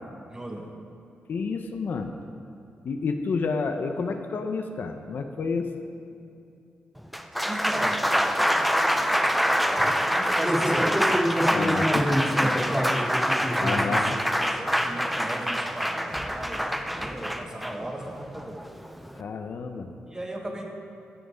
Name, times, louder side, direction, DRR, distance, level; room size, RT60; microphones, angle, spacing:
voice 1, 0.3-0.8 6.2-6.3 7.4-8.7 9.7-11.0 11.6-11.7 12.4-13.0 13.6-13.8 14.5-18.7 20.1-20.7, right 1 dB, 20° right, 1 dB, 1.7 m, -37 dB
voice 2, 1.3-2.2 2.8-5.7 11.5-12.2 13.6-14.2 19.2-19.9, left 4 dB, 60° left, 5 dB, 0.8 m, -30 dB
Applause, 7.0-19.2, equal, ahead, 0.6 m, -24 dB
14.5 x 7.9 x 5.1 m, 2.6 s
cardioid pair, 80°, 4 cm